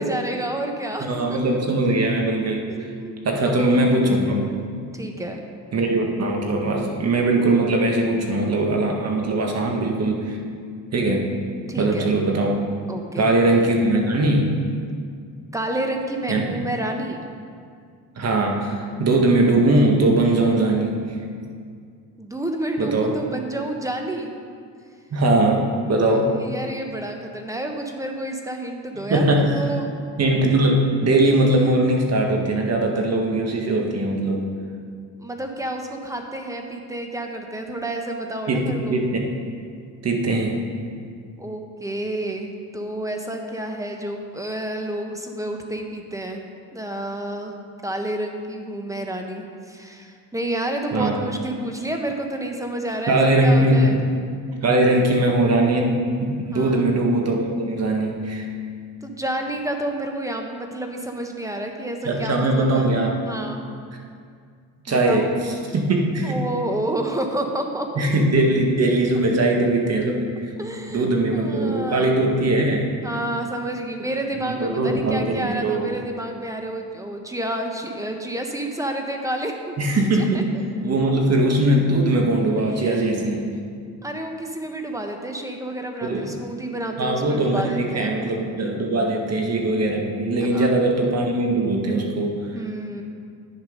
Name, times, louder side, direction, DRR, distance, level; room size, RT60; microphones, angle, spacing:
voice 1, 0.0-1.6 2.7-3.8 4.9-5.4 11.7-12.1 12.9-13.3 15.5-17.2 22.2-24.3 24.8-24.9 26.1-29.9 35.2-39.0 41.4-46.4 46.7-47.5 47.8-54.0 56.5-56.8 59.0-62.9 63.2-63.6 64.9-65.3 66.2-67.9 70.6-72.2 73.0-79.7 80.2-80.4 82.5-83.0 83.4-83.5 84.0-88.2 90.5-90.7 92.5-93.0, right 1 dB, 10° right, 3 dB, 1.3 m, -30 dB
voice 2, 1.0-2.7 3.2-4.5 5.7-10.4 10.9-11.3 11.8-12.6 13.2-14.6 16.3-16.6 18.2-21.0 22.8-23.2 25.1-26.3 29.1-29.6 30.2-34.5 38.5-39.2 40.0-40.6 50.9-51.2 53.1-54.1 54.6-58.5 62.0-63.2 64.9-65.3 65.7-66.4 68.0-70.5 70.9-72.9 74.6-75.9 79.8-80.4 80.8-83.4 86.0-86.3 87.0-92.4, right 2 dB, 40° right, 1 dB, 1.8 m, -20 dB
9.6 x 6.9 x 5.3 m, 2.2 s
supercardioid pair, 80°, 37 cm